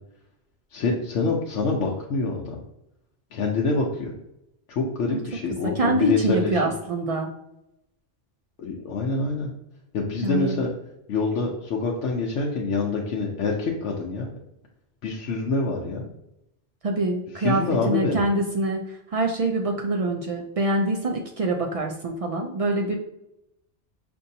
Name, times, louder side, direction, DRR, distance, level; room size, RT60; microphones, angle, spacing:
voice 1, 0.7-2.6 3.3-4.1 4.7-6.7 8.6-9.5 9.9-10.7 11.1-14.3 15.0-16.1 17.4-18.2, left 3 dB, 85° left, -1 dB, 0.9 m, -26 dB
voice 2, 5.6-7.3 10.2-10.6 16.8-18.8 19.1-23.0, right 2 dB, 65° right, 1 dB, 0.3 m, -25 dB
5.3 x 2.5 x 2.7 m, 0.85 s
omnidirectional pair, 1.2 m